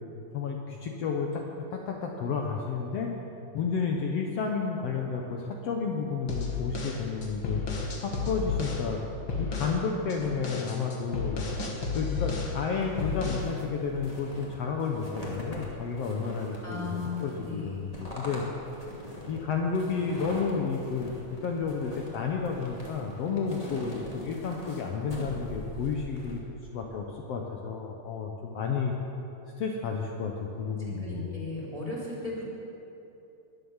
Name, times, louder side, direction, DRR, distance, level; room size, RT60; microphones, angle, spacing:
voice 1, 0.3-1.4 1.7-3.1 3.5-7.6 8.0-9.0 9.4-11.5 11.9-18.4 19.3-21.1 21.4-26.4 26.7-28.9 29.6-31.4, left 5 dB, 65° left, 1 dB, 1.9 m, -31 dB
sound 1, 6.3-8.9 9.3-9.8 10.1-12.6 13.0-13.5, left 4 dB, 45° left, 2.3 m, -32 dB
sound 2, 12.8-26.4, equal, 15° left, 2.1 m, -43 dB
voice 2, 16.6-17.7 31.0-32.5, left 2 dB, 10° right, -6 dB, 3.3 m, -36 dB
22.0 x 7.6 x 7.2 m, 2.9 s
omnidirectional pair, 3.4 m